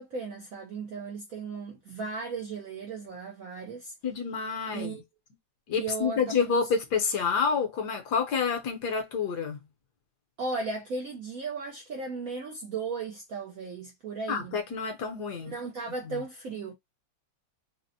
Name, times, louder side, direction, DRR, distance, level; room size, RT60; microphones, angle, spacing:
voice 1, 0.0-3.9 4.7-5.0 5.7-6.3 10.4-14.6 15.4-16.7, right 4 dB, 70° right, 0.8 m, -36 dB
voice 2, 4.0-5.0 5.7-9.6 14.3-15.5 16.1-16.2, left 6 dB, 65° left, 1.2 m, -28 dB
4.1 x 2.0 x 2.6 m
omnidirectional pair, 2.1 m